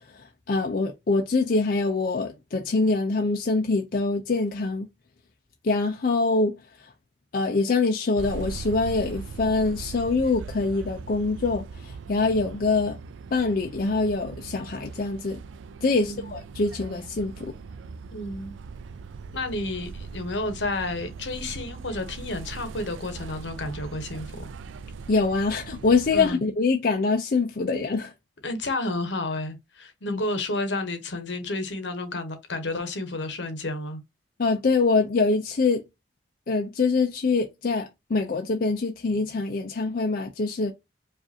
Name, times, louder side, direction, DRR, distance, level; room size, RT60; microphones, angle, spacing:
voice 1, 0.0-4.9 5.6-6.9 7.3-13.0 13.3-15.4 15.8-17.5 25.1-28.1 30.1-30.2 34.4-35.8 36.5-40.7, left 3 dB, 50° left, 0.4 m, -24 dB
sound 1, 8.2-26.3, right 4 dB, 90° right, 0.4 m, -40 dB
voice 2, 15.9-16.3 18.1-18.6 19.3-24.5 26.1-26.4 28.4-34.0, left 2 dB, 75° left, 0.9 m, -31 dB
4.9 x 2.5 x 2.7 m
head